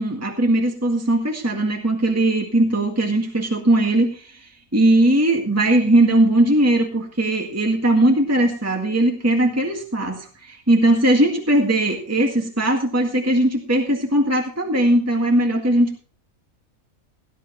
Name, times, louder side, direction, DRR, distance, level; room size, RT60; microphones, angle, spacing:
voice 1, 0.0-16.0, right 1 dB, 10° right, 2 dB, 1.8 m, -19 dB
18.0 x 11.5 x 3.1 m, 0.38 s
omnidirectional pair, 1.5 m